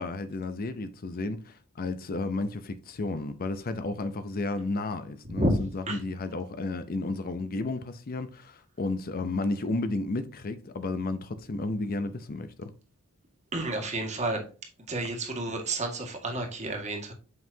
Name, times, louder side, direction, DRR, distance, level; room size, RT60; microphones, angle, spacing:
voice 1, 0.0-12.7, left 2 dB, 40° left, 0.5 m, -32 dB
voice 2, 13.5-14.4 14.9-17.1, right 1 dB, 30° right, 1.8 m, -30 dB
7.8 x 5.5 x 2.7 m
head